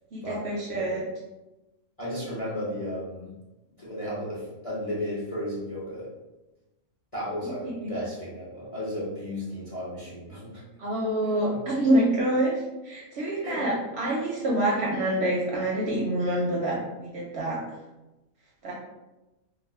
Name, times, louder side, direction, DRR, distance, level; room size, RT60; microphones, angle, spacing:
voice 1, 0.1-1.0 7.8-7.9 10.8-17.6 18.6-18.7, right 1 dB, 65° right, -3 dB, 0.7 m, -26 dB
voice 2, 2.0-3.4 3.8-6.1 7.1-10.6 11.2-11.4 13.4-13.6, equal, 35° left, -8 dB, 0.6 m, -34 dB
2.4 x 2.4 x 3.4 m, 1.0 s
omnidirectional pair, 1.4 m